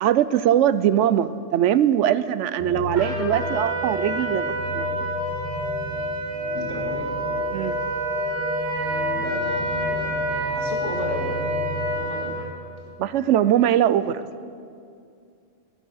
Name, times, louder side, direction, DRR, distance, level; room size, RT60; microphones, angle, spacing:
voice 1, 0.0-4.9 7.5-7.8 13.0-14.3, right 11 dB, 70° right, 15 dB, 0.9 m, -21 dB
sound 1, 2.6-11.9, left 2 dB, 85° left, 5.1 m, -30 dB
Trumpet, 2.9-12.5, right 3 dB, 55° right, 3.3 m, -30 dB
voice 2, 6.5-7.1 9.1-12.4, left 1 dB, 65° left, -1 dB, 2.6 m, -34 dB
15.5 x 12.0 x 6.3 m, 2.4 s
omnidirectional pair, 1.3 m